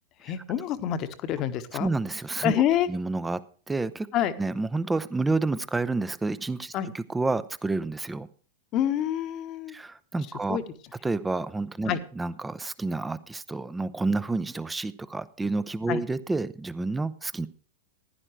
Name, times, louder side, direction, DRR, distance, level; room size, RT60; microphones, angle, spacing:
voice 1, 0.2-1.9 2.4-2.9 4.1-4.3 6.7-6.9 8.7-9.7 10.5-10.6 11.9-12.0 15.9-16.0, left 11 dB, 35° left, 11 dB, 1.1 m, -27 dB
voice 2, 1.8-2.6 2.9-3.4 3.7-4.1 4.4-8.3 9.7-10.6 11.0-17.5, right 3 dB, 10° right, 15 dB, 0.6 m, -29 dB
15.0 x 11.0 x 3.1 m, 0.41 s
figure-of-eight pair, 90°, 0 cm